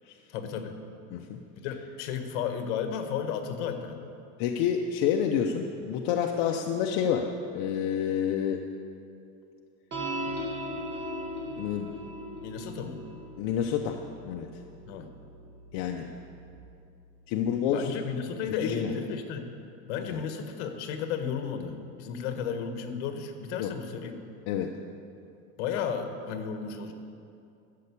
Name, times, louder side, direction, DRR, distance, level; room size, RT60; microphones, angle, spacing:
voice 1, 0.3-0.8 1.6-4.0 12.4-13.0 14.9-15.1 17.7-19.5 19.9-24.1 25.6-26.9, left 7 dB, 75° left, 7 dB, 1.5 m, -33 dB
voice 2, 4.4-8.6 11.6-11.9 13.4-14.0 14.2-14.5 15.7-16.1 17.3-17.9 18.6-18.9 20.1-20.2 23.6-23.7 24.5-24.7, left 8 dB, 55° left, 2 dB, 0.8 m, -28 dB
sound 1, 9.9-16.6, equal, 30° right, 2.0 m, -39 dB
13.0 x 6.8 x 8.3 m, 2.5 s
cardioid pair, 160°, 36 cm